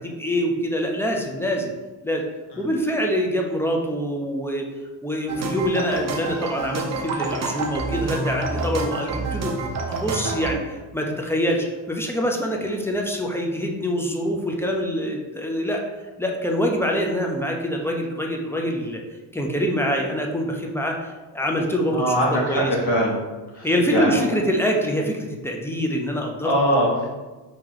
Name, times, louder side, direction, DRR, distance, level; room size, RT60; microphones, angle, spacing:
voice 1, 0.0-1.7 2.0-2.2 2.6-4.7 5.0-9.5 9.9-15.8 16.2-19.0 19.3-22.1 22.5-22.7 23.6-26.5, equal, 5° left, 0 dB, 0.5 m, -25 dB
sound 1, 5.3-10.5, right 3 dB, 35° right, 0.7 m, -28 dB
voice 2, 21.9-23.1 23.5-24.3 26.4-26.9, equal, 55° left, -4 dB, 1.4 m, -22 dB
4.8 x 3.0 x 3.8 m, 1.2 s
cardioid pair, 110°, 45 cm